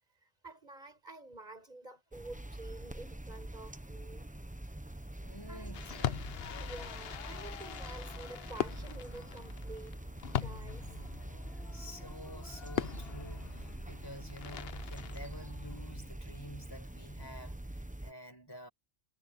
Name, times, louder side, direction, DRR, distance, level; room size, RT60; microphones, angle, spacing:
voice 1, 0.2-4.3 5.5-6.3 6.6-10.0 10.4-10.9, right 2 dB, 45° right, 5.4 m, -49 dB
sound 1, 2.1-18.1, right 1 dB, 10° right, 0.9 m, -45 dB
voice 2, 5.2-6.2 11.7-18.7, left 1 dB, 20° left, 6.6 m, -49 dB
Fireworks, 5.7-15.9, left 10 dB, 70° left, 0.9 m, -41 dB
omnidirectional pair, 1.1 m